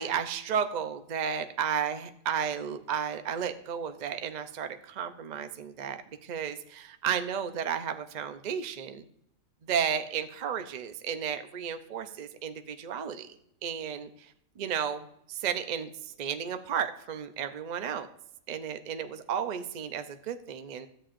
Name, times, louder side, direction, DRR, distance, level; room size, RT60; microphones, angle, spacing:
voice 1, 0.0-9.1 9.6-13.3 13.6-18.1 18.5-20.9, right 8 dB, 55° right, 9 dB, 0.4 m, -33 dB
13.5 x 8.6 x 2.5 m, 0.73 s
omnidirectional pair, 1.5 m